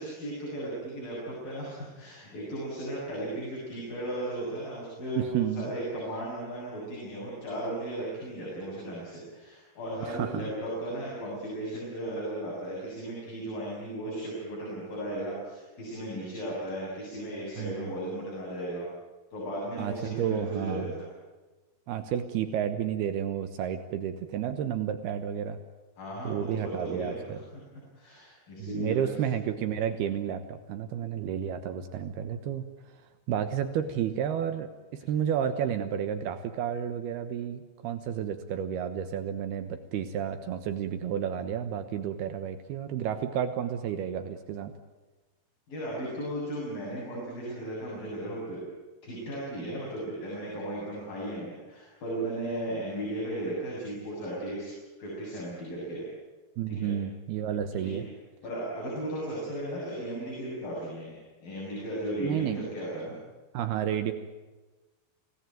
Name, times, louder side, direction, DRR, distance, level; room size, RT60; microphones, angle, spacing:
voice 1, 0.0-18.9 19.3-21.1 26.0-27.2 27.5-27.6 28.0-29.1 45.7-48.7 49.0-54.7 55.0-56.0 56.7-56.9 57.7-58.1 58.4-63.2, right 1 dB, 60° left, -5 dB, 9.4 m, -36 dB
voice 2, 5.2-5.7 10.1-10.5 17.6-17.9 19.8-20.9 21.9-25.6 26.2-27.4 28.6-32.6 33.3-44.7 56.6-58.0 62.2-62.7 63.5-64.1, right 9 dB, 75° right, 9 dB, 3.1 m, -31 dB
29.0 x 18.0 x 9.2 m, 1.2 s
omnidirectional pair, 4.6 m